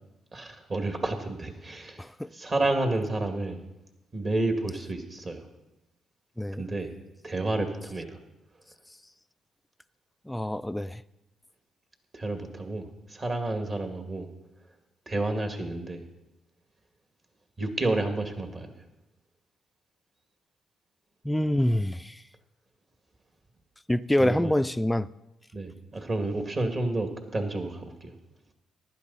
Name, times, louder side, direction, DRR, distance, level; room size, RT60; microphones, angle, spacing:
voice 1, 0.3-2.1 2.3-3.6 4.1-5.5 6.5-6.9 7.2-8.2 12.1-14.3 15.1-16.1 17.6-18.7 24.2-24.5 25.5-28.2, right 2 dB, 35° right, 2.1 m, -30 dB
voice 2, 2.0-2.3 6.4-6.6 10.3-11.0 21.2-22.2 23.9-25.1, left 1 dB, 5° left, 0.4 m, -26 dB
15.0 x 11.5 x 4.1 m
cardioid pair, 90°, 0 cm